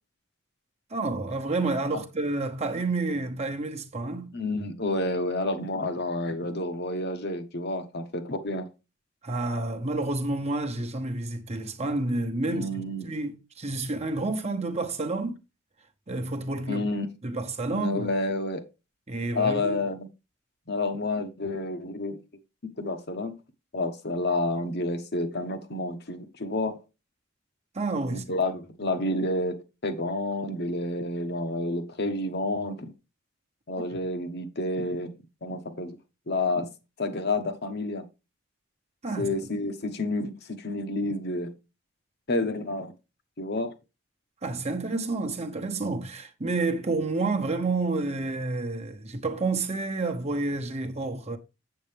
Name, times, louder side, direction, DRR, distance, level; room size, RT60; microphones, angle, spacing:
voice 1, 0.9-4.4 9.2-12.7 13.0-15.4 16.1-16.8 17.2-18.1 19.1-19.8 27.7-28.2 39.0-39.3 44.4-51.4, right 2 dB, 35° right, 1.0 m, -29 dB
voice 2, 4.3-8.7 12.5-13.1 16.7-17.1 17.7-18.6 19.3-20.1 20.7-22.2 22.8-23.3 23.7-26.8 28.1-32.9 33.7-35.1 35.4-36.0 36.3-36.7 37.0-38.0 39.2-40.3 40.6-41.5 42.3-42.9 43.4-43.7, left 2 dB, 60° left, 1.2 m, -29 dB
8.0 x 7.7 x 3.4 m
head